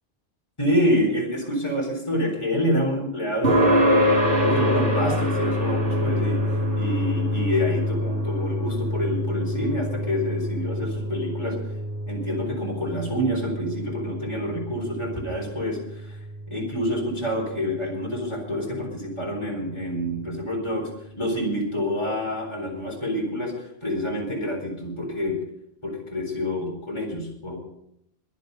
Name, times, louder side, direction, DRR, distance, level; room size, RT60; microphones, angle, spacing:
voice 1, 0.6-4.1 4.4-6.4 6.7-11.6 12.1-16.2 16.5-20.9 21.2-25.4 25.8-27.6, left 1 dB, 25° left, -1 dB, 4.1 m, -27 dB
sound 1, 3.4-18.3, equal, 55° right, 4.5 m, -26 dB
22.0 x 7.4 x 5.4 m, 0.75 s
omnidirectional pair, 1.1 m